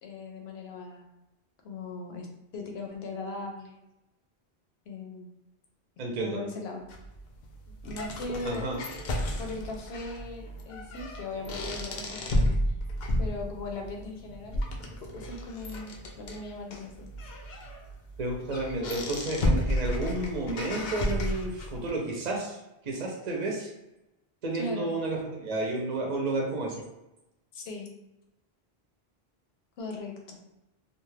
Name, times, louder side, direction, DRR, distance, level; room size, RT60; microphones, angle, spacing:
voice 1, 0.0-1.2 1.6-2.3 2.5-3.8 4.9-5.3 6.2-6.8 7.8-8.6 9.4-12.3 13.2-14.6 15.2-17.1 24.5-24.9 27.5-27.9 29.8-30.4, left 3 dB, 80° left, 1 dB, 0.9 m, -39 dB
voice 2, 6.0-6.4 8.4-8.8 18.2-22.6 22.8-23.7 24.4-26.8, right 2 dB, 50° right, -1 dB, 0.6 m, -31 dB
sound 1, 6.9-21.9, left 1 dB, 55° left, 0.6 m, -32 dB
2.5 x 2.3 x 3.2 m, 0.94 s
omnidirectional pair, 1.0 m